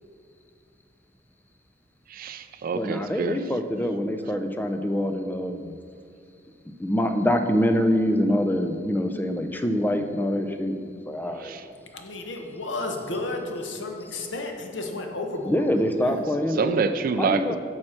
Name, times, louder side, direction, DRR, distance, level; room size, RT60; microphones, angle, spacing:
voice 1, 2.1-3.4 11.4-11.6 16.6-17.6, right 5 dB, 50° right, 9 dB, 0.4 m, -26 dB
voice 2, 2.7-5.8 6.8-11.5 15.4-16.8 17.2-17.6, equal, 10° left, 6 dB, 0.5 m, -25 dB
voice 3, 11.9-16.2, left 2 dB, 85° left, 3 dB, 1.0 m, -33 dB
8.9 x 6.3 x 4.4 m, 2.2 s
head